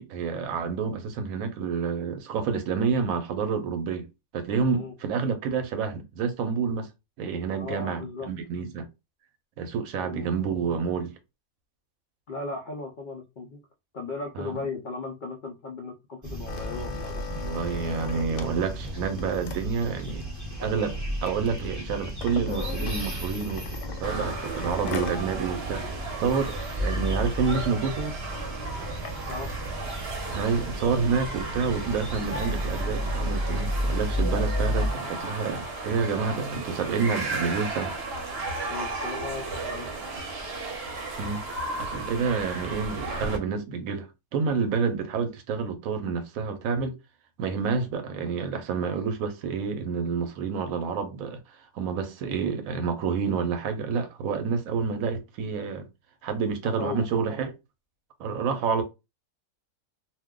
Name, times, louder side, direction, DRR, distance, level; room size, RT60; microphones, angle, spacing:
voice 1, 0.0-4.0 4.3-6.9 7.2-8.9 9.6-11.1 14.4-14.6 17.3-20.2 20.6-28.2 30.3-37.9 41.2-44.1 44.3-46.9 47.4-55.9 56.2-57.5 58.2-58.8, right 5 dB, 75° right, 1.0 m, -29 dB
voice 2, 7.6-8.3 10.0-10.3 12.3-13.6 13.9-17.2 29.3-29.5 38.7-39.9 56.6-57.1, left 3 dB, 85° left, 0.4 m, -36 dB
sound 1, 16.2-34.9, equal, 20° right, 0.5 m, -33 dB
sound 2, 16.5-25.2 25.7-25.8 26.0-26.3 26.8-26.9 27.1-27.4 28.1-29.3 30.1-30.2, left 6 dB, 70° left, 0.8 m, -39 dB
sound 3, 24.0-43.4, right 2 dB, 50° right, 0.9 m, -35 dB
2.5 x 2.1 x 3.6 m
omnidirectional pair, 1.6 m